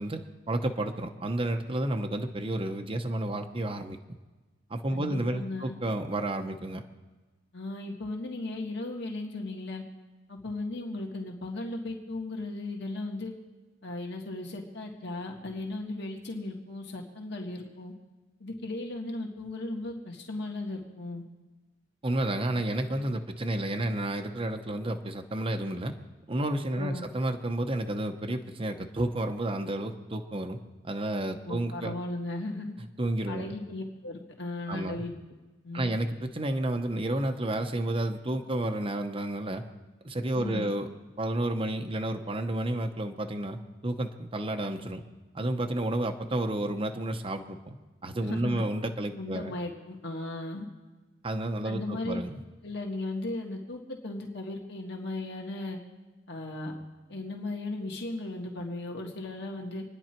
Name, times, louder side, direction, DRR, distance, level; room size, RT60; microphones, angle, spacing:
voice 1, 0.0-4.0 4.7-6.8 22.0-25.9 26.3-30.6 30.8-31.9 33.0-33.5 34.7-35.0 35.7-39.6 40.0-40.9 41.2-43.6 43.8-45.0 45.3-47.8 48.0-49.5 51.2-52.4, right 1 dB, 30° right, 4 dB, 0.9 m, -31 dB
voice 2, 4.9-5.7 7.5-9.8 10.3-13.3 13.8-17.9 18.4-21.2 26.7-27.1 31.5-32.7 33.3-35.1 35.6-35.9 40.3-40.7 48.2-48.6 49.1-50.7 51.6-52.2 52.6-55.8 56.3-56.8 57.1-59.8, left 2 dB, 65° left, 1 dB, 1.9 m, -36 dB
26.5 x 10.0 x 4.5 m, 1.2 s
head